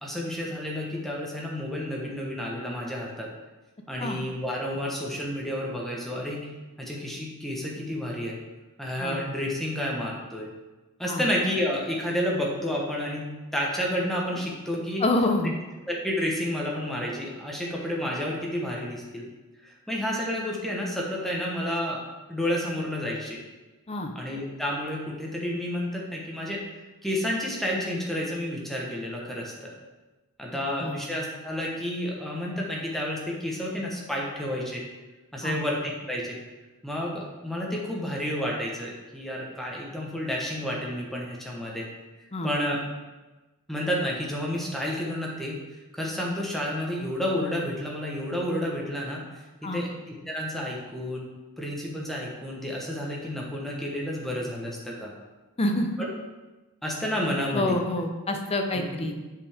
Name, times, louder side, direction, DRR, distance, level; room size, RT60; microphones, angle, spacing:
voice 1, 0.0-3.3 3.9-6.4 6.8-8.4 8.8-10.5 11.0-13.2 13.5-15.0 15.9-19.2 19.6-22.0 22.3-23.4 24.1-26.6 27.0-29.7 30.4-34.8 35.3-36.4 36.8-41.9 42.4-42.8 43.7-45.6 45.9-49.2 49.6-50.0 50.3-51.2 51.6-55.1 56.0-56.1 56.8-57.8 58.7-58.8, equal, ahead, -3 dB, 1.1 m, -30 dB
voice 2, 15.0-15.5 23.9-24.1 30.8-31.0 35.4-35.6 42.3-42.5 49.6-49.8 55.6-56.1 57.5-59.1, left 1 dB, 25° left, 4 dB, 0.6 m, -27 dB
7.4 x 5.3 x 3.5 m, 1.2 s
head